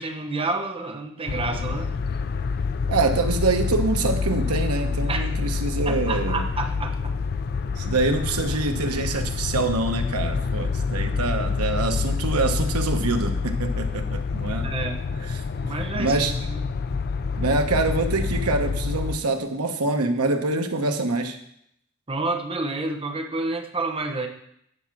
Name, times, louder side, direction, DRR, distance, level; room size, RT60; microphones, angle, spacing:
voice 1, 0.0-2.0 5.1-5.3 5.9-7.1 14.6-15.0 15.6-16.2 16.6-16.7 22.1-24.3, right 3 dB, 25° right, 4 dB, 0.9 m, -29 dB
sound 1, 1.3-19.2, left 4 dB, 45° left, 0.4 m, -27 dB
voice 2, 2.9-6.4 7.8-14.6 15.3-15.4 15.9-16.3 17.4-21.4, right 3 dB, 90° right, 6 dB, 1.0 m, -25 dB
9.8 x 4.7 x 6.0 m, 0.72 s
head